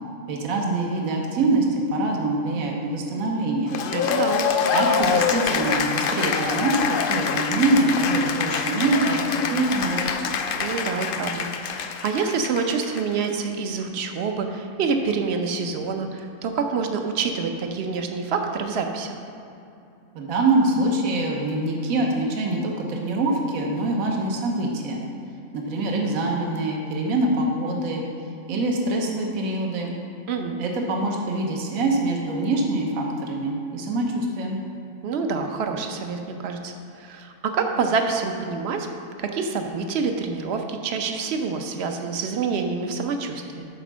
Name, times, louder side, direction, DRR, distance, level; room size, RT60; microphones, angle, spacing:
voice 1, 0.3-3.7 4.7-10.1 20.1-25.0 25.5-28.0 28.5-29.9 30.6-34.6, right 2 dB, 70° right, 0 dB, 1.4 m, -24 dB
Cheering / Applause, 3.7-13.3, left 6 dB, 75° left, 0.5 m, -25 dB
voice 2, 3.9-4.5 10.6-19.2 30.3-30.6 35.0-38.9 39.2-43.7, right 5 dB, 55° right, 5 dB, 0.9 m, -27 dB
9.3 x 4.5 x 6.1 m, 2.7 s
omnidirectional pair, 1.5 m